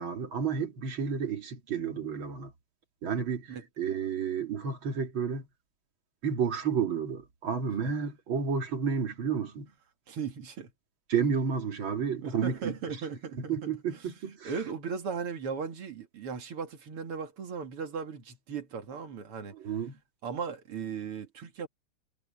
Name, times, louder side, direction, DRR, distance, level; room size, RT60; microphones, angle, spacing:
voice 1, 0.0-2.5 3.0-5.5 6.2-9.7 11.1-13.0 13.3-14.5 19.5-20.0, right 6 dB, 65° right, 2.9 m, -31 dB
voice 2, 10.1-10.7 12.2-14.1 14.4-19.5 20.2-21.7, right 6 dB, 85° right, 3.0 m, -37 dB
omnidirectional pair, 2.4 m